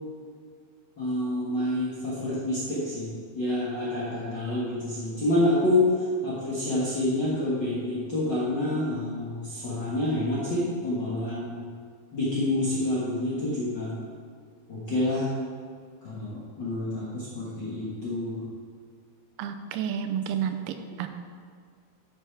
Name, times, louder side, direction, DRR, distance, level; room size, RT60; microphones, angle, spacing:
voice 1, 1.0-11.6 12.1-13.9 14.7-15.3 16.0-18.4, left 1 dB, 55° left, -8 dB, 1.3 m, -28 dB
voice 2, 19.4-21.1, right 8 dB, 85° right, 7 dB, 2.6 m, -30 dB
11.5 x 5.6 x 4.8 m, 2.1 s
omnidirectional pair, 4.5 m